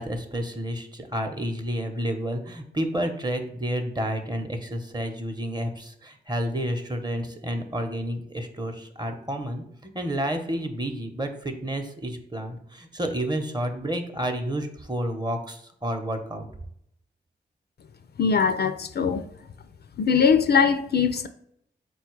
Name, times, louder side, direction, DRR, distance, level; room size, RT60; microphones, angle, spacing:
voice 1, 0.0-16.5, equal, 20° right, 0.8 m, -30 dB
voice 2, 18.2-19.2 20.0-21.3, left 6 dB, 60° left, 0.4 m, -21 dB
4.3 x 2.3 x 4.5 m
cardioid pair, 50°, 19 cm